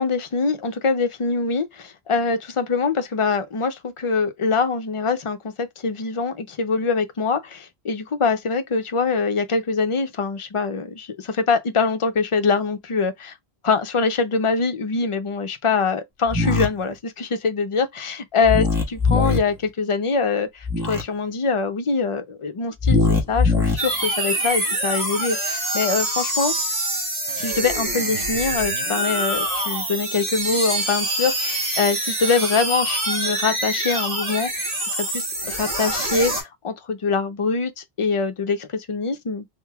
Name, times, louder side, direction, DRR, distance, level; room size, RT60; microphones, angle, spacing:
voice 1, 0.0-13.3 13.6-23.0 23.3-26.5 27.3-39.5, left 4 dB, 40° left, 0.5 m, -24 dB
sound 1, 16.3-16.7 18.4-19.4 20.6-21.0 22.8-23.7, left 4 dB, 5° right, 1.2 m, -20 dB
sound 2, 23.8-36.4, right 1 dB, 60° right, 1.8 m, -25 dB
3.6 x 3.2 x 2.3 m
omnidirectional pair, 1.1 m